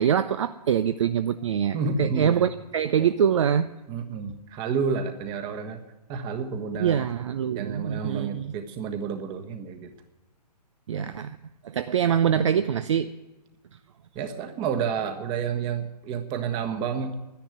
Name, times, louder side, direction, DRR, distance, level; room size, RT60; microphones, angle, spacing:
voice 1, 0.0-3.7 6.8-8.5 10.9-11.4 11.6-13.1, right 8 dB, 45° right, 12 dB, 0.6 m, -24 dB
voice 2, 1.7-2.5 3.9-5.8 6.1-7.1 7.5-9.9 11.0-11.2 12.3-12.4 14.1-17.1, right 6 dB, 20° right, 7 dB, 1.4 m, -30 dB
11.5 x 10.0 x 9.2 m, 1.1 s
figure-of-eight pair, 135°, 21 cm